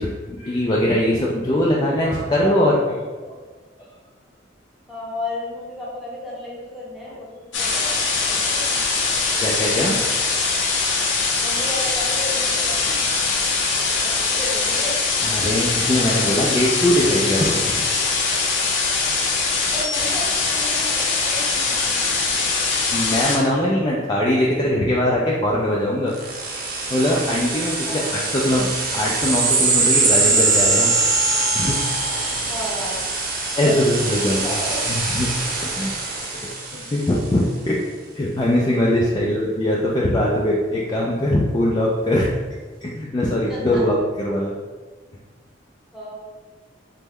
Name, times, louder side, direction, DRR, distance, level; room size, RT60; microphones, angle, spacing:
voice 1, 0.0-3.4 9.4-10.0 15.2-17.8 22.9-26.1 26.9-28.0 28.4-30.9 31.5-31.8 33.6-34.5 34.9-35.4 35.6-36.0 36.3-36.5 36.9-37.8 38.1-42.3 42.8-44.6, left 1 dB, 25° left, -4 dB, 0.3 m, -21 dB
voice 2, 4.9-8.8 11.4-13.1 14.0-15.0 19.7-22.4 27.8-28.6 32.5-33.0 33.6-34.8 36.7-36.8 39.1-39.2 43.5-43.8 45.9-46.1, left 1 dB, ahead, -7 dB, 0.8 m, -33 dB
sound 1, 7.5-23.4, left 4 dB, 85° left, 0.6 m, -22 dB
sound 2, 26.1-37.2, right 3 dB, 50° right, 0.6 m, -22 dB
3.0 x 2.2 x 3.5 m, 1.3 s
head